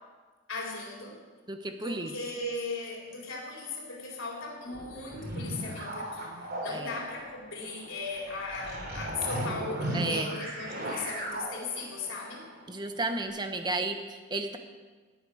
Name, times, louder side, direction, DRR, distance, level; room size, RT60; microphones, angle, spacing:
voice 1, 0.5-1.2 1.7-12.5, left 3 dB, 75° left, -2 dB, 4.1 m, -37 dB
voice 2, 1.5-2.1 6.7-6.9 9.9-10.3 12.7-14.6, right 2 dB, 20° right, 7 dB, 1.0 m, -33 dB
sound 1, 4.7-12.6 13.1-13.3, right 1 dB, 50° right, 3.7 m, -37 dB
18.5 x 8.2 x 6.4 m, 1.4 s
head